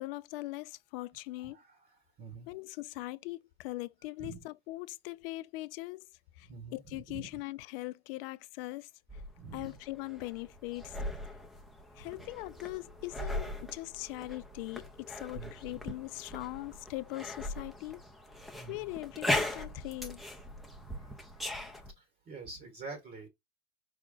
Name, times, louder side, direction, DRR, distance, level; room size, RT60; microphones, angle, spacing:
voice 1, 0.0-1.6 2.5-6.1 6.4-8.9 9.5-11.0 12.0-18.0 18.7-20.2, left 19 dB, 50° left, 0.5 m, -41 dB
voice 2, 1.4-1.8 2.2-2.5 4.2-4.4 6.4-7.3 9.3-9.7 12.0-12.1 15.3-15.8 18.5-18.8 20.8-21.2 22.0-23.3, right 4 dB, 25° right, 1.2 m, -47 dB
sound 1, 9.1-21.9, left 1 dB, ahead, 0.6 m, -39 dB
5.1 x 2.2 x 3.7 m
hypercardioid pair, 115°, 37 cm